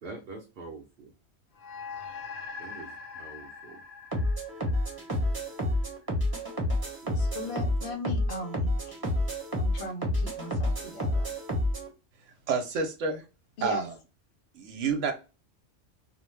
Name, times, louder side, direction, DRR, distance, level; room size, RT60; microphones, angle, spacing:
voice 1, 0.0-1.1 2.6-3.8 7.0-7.4, right 3 dB, 60° right, 2 dB, 0.7 m, -45 dB
sound 1, 1.6-6.2, left 5 dB, 85° left, 1.1 m, -43 dB
sound 2, 4.1-11.9, left 1 dB, 20° right, 0.7 m, -29 dB
voice 2, 7.2-9.0 9.6-11.3 13.6-13.9, left 2 dB, 65° left, 2 dB, 0.9 m, -38 dB
voice 3, 12.5-13.2 13.6-13.9 14.5-15.1, right 5 dB, 90° right, 4 dB, 1.0 m, -29 dB
2.5 x 2.1 x 3.1 m, 0.30 s
omnidirectional pair, 1.2 m